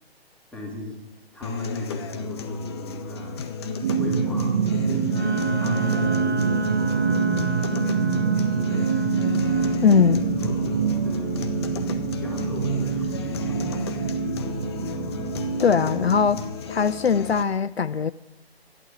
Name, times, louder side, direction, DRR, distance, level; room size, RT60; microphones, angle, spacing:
voice 1, 0.5-3.4 4.0-9.4 10.0-11.3 12.1-14.4, left 3 dB, 5° left, 2.4 m, -39 dB
sound 1, 1.4-17.4, left 5 dB, 25° left, 0.9 m, -34 dB
sound 2, 3.8-16.5, right 6 dB, 25° right, 0.8 m, -26 dB
Wind instrument woodwind instrument, 5.0-9.8, right 3 dB, 90° right, 2.0 m, -28 dB
voice 2, 9.8-10.2 15.6-16.4 16.7-18.1, left 6 dB, 70° left, 0.6 m, -20 dB
11.5 x 11.0 x 8.7 m
figure-of-eight pair, 135°, 32 cm